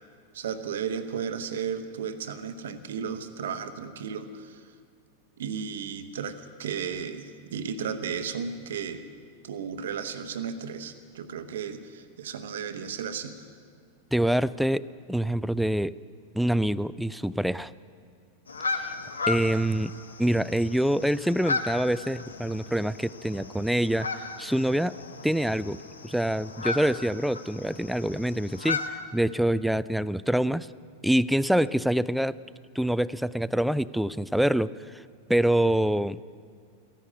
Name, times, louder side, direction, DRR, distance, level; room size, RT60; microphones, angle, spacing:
voice 1, 0.3-4.7 5.4-9.0 9.4-13.4, right 7 dB, 60° right, 10 dB, 1.0 m, -34 dB
voice 2, 14.1-15.9 16.3-17.7 19.3-19.9 20.2-24.9 25.2-25.8 26.0-30.7 31.0-32.4 32.8-35.0 35.3-36.2, right 1 dB, ahead, 18 dB, 0.3 m, -25 dB
sound 1, 18.5-28.9, left 4 dB, 75° left, 0.9 m, -35 dB
15.0 x 11.0 x 8.5 m, 2.2 s
figure-of-eight pair, 90°, 0 cm